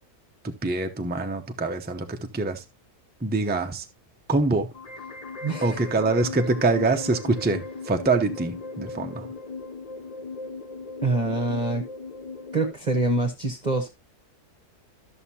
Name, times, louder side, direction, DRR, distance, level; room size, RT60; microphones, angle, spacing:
voice 1, 0.4-2.6 3.2-3.9 4.3-4.7 5.6-9.3, right 3 dB, 10° right, 0.5 m, -25 dB
sound 1, 4.7-12.7, left 3 dB, 35° left, 0.7 m, -37 dB
voice 2, 5.4-5.8 11.0-11.8 12.5-13.9, right 2 dB, 30° right, 1.2 m, -25 dB
13.0 x 6.6 x 2.8 m
omnidirectional pair, 1.6 m